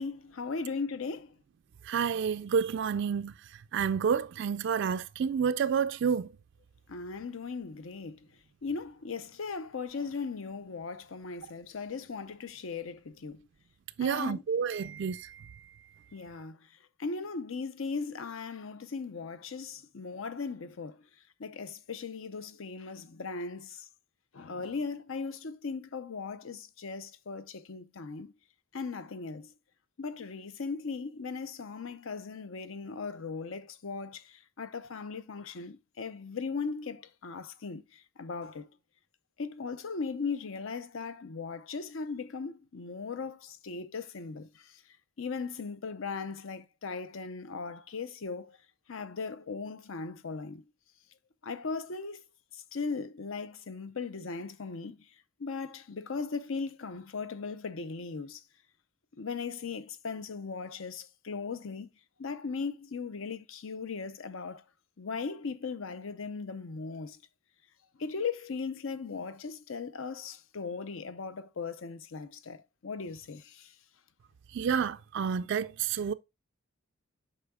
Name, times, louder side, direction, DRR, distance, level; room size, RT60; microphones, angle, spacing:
voice 1, 0.0-1.4 6.9-8.3 8.6-13.5 14.0-14.4 16.1-16.7 17.0-21.0 21.4-23.9 24.3-28.3 28.7-29.5 30.0-38.8 39.4-44.8 45.2-48.6 48.9-50.6 51.4-52.2 52.5-55.1 55.4-58.4 59.2-61.9 62.2-64.6 65.0-67.2 68.0-73.8, left 4 dB, 70° left, 0.6 m, -38 dB
voice 2, 1.9-3.3 3.7-6.3 14.0-15.6 74.5-76.1, right 7 dB, 55° right, 0.3 m, -29 dB
8.1 x 5.5 x 2.2 m
head